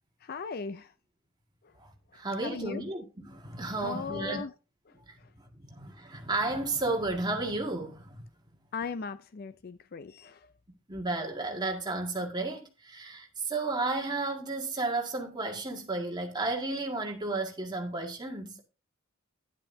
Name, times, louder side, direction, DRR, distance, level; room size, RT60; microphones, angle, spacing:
voice 1, 0.2-0.9 1.6-1.7 2.4-2.8 3.8-4.5 8.7-10.5, left 5 dB, 45° left, 0.4 m, -38 dB
voice 2, 1.8-4.4 5.1-5.2 5.6-8.2 10.7-18.6, right 2 dB, 20° right, 1.8 m, -33 dB
10.5 x 10.5 x 2.7 m
head